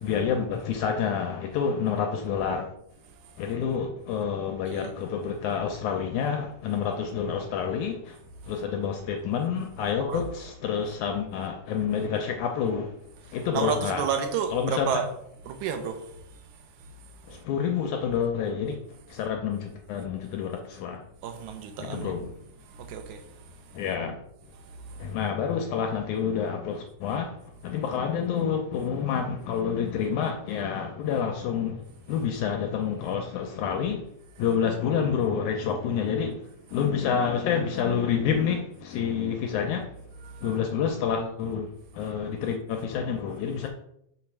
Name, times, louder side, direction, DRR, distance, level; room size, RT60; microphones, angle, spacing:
voice 1, 0.0-2.7 3.4-8.2 8.5-13.0 13.3-14.0 14.5-14.9 17.3-18.8 19.1-21.0 21.8-22.3 23.7-24.2 25.0-27.4 27.6-31.8 32.1-34.0 34.4-36.4 36.7-39.9 40.4-43.7, left 7 dB, 75° left, 2.0 m, -28 dB
voice 2, 13.5-15.1 15.5-16.0 21.2-22.1 22.8-23.2 40.3-40.5, right 7 dB, 75° right, 2.1 m, -30 dB
5.4 x 4.3 x 6.0 m
omnidirectional pair, 3.7 m